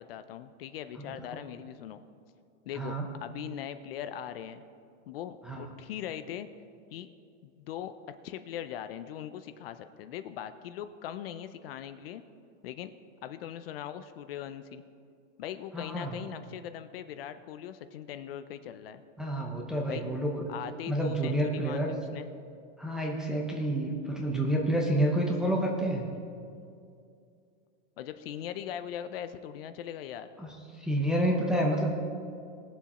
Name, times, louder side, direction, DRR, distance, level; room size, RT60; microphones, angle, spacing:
voice 1, 0.0-2.0 2.7-4.6 5.1-6.5 6.9-7.1 7.4-12.2 12.6-12.9 13.2-14.8 15.4-19.0 19.9-20.0 20.5-22.3 28.0-30.3, left 10 dB, 55° left, 11 dB, 0.6 m, -40 dB
voice 2, 2.8-3.1 5.5-5.6 15.7-16.2 19.2-20.5 20.9-21.9 22.8-26.1 30.4-32.0, right 1 dB, ahead, -2 dB, 0.6 m, -29 dB
19.5 x 7.2 x 4.2 m, 2.4 s
supercardioid pair, 170°, 36 cm